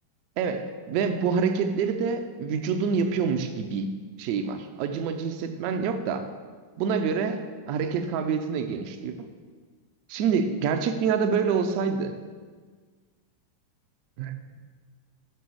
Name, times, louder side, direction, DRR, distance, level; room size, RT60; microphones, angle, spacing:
voice 1, 0.4-3.9 4.2-6.3 6.8-7.4 7.7-9.3 10.1-12.1 14.2-14.4, right 6 dB, 45° right, 8 dB, 0.5 m, -26 dB
6.0 x 5.5 x 4.7 m, 1.5 s
figure-of-eight pair, 90°, 0 cm